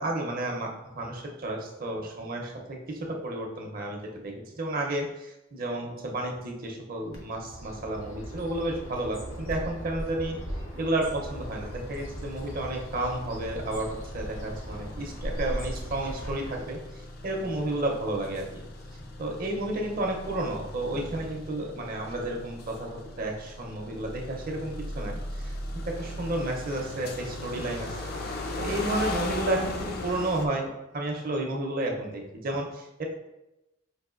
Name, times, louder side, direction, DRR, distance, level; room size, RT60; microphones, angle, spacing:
voice 1, 0.0-4.0 4.2-5.1 5.5-10.4 10.8-16.8 17.2-18.4 19.2-25.2 25.9-28.1 28.6-33.0, right 1 dB, 50° right, 1 dB, 0.6 m, -31 dB
Bird, 7.1-16.8, equal, 85° left, 0.9 m, -38 dB
sound 1, 11.0-30.5, left 1 dB, 50° left, 0.4 m, -39 dB
4.7 x 2.5 x 2.4 m, 0.92 s
head